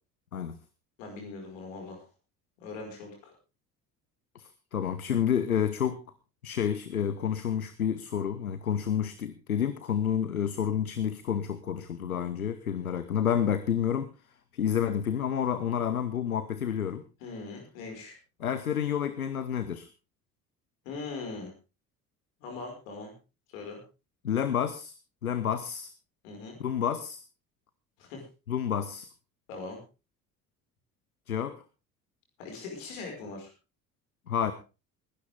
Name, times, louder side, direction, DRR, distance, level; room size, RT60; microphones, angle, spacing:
voice 1, 1.0-2.0 2.6-3.3 17.2-18.2 20.8-21.5 22.4-23.1 23.5-23.8 26.2-26.6 28.0-28.2 29.5-29.8 32.4-33.5, left 3 dB, 65° left, 2 dB, 5.4 m, -40 dB
voice 2, 4.3-6.0 6.4-14.1 14.5-17.0 18.4-19.9 24.2-24.9 25.2-25.9 26.6-27.2 28.5-29.1 31.3-31.6 34.3-34.5, left 8 dB, 85° left, 13 dB, 0.8 m, -29 dB
19.5 x 12.0 x 3.6 m, 0.31 s
figure-of-eight pair, 50°, 42 cm